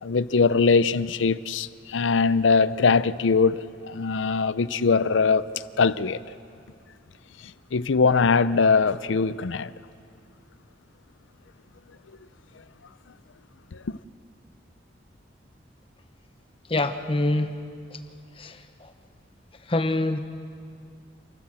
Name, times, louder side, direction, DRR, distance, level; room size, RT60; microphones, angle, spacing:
voice 1, 0.0-5.5 5.8-6.2 7.7-9.7 13.7-13.8, left 4 dB, 85° left, 0.6 m, -21 dB
voice 2, 16.7-17.6 17.9-18.0 18.4-18.9 19.7-20.2, left 2 dB, 30° left, 1.0 m, -25 dB
28.5 x 14.0 x 7.6 m
head